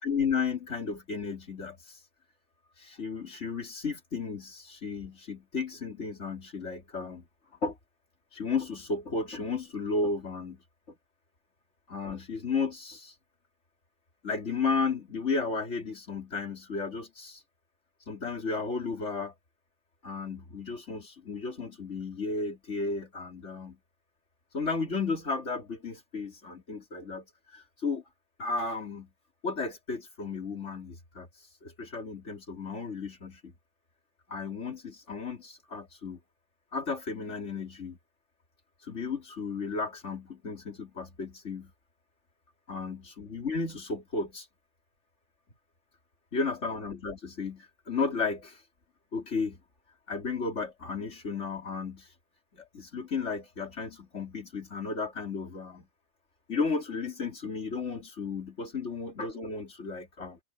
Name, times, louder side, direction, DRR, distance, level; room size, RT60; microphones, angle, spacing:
voice 1, 0.0-1.8 2.8-7.2 7.6-7.8 8.3-10.6 11.9-13.1 14.2-17.4 18.1-19.3 20.0-23.8 24.5-27.3 27.5-28.0 28.4-29.1 29.4-31.3 31.6-33.5 34.3-36.2 36.7-38.0 38.8-41.7 42.7-44.5 46.3-48.6 49.1-49.6 50.1-52.1 52.5-55.9 56.5-60.4, left 4 dB, 80° left, 3.4 m, -33 dB
omnidirectional pair, 1.2 m